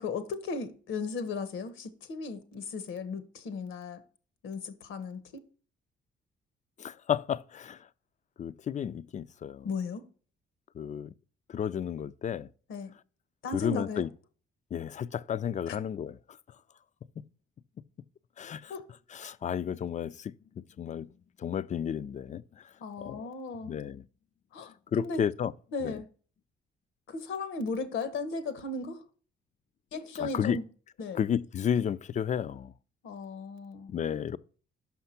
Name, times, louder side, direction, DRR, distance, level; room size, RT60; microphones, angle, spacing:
voice 1, 0.0-4.0 4.4-5.4 9.6-10.0 12.7-12.9 13.4-14.1 15.7-15.8 18.7-18.8 22.8-23.7 24.5-25.2 25.7-26.1 27.1-29.0 29.9-30.6 31.0-31.2 33.0-33.9, left 4 dB, 85° left, 1.1 m, -36 dB
voice 2, 6.8-7.8 8.4-9.7 10.8-11.1 11.5-12.5 13.5-14.1 14.7-16.2 18.4-18.7 19.1-20.3 20.8-21.1 21.4-22.4 23.0-23.2 23.7-24.0 24.9-25.5 25.8-26.0 30.2-30.6 31.1-32.7 33.9-34.4, left 8 dB, 40° left, 0.4 m, -32 dB
5.8 x 5.7 x 5.7 m
cardioid pair, 90°, 20 cm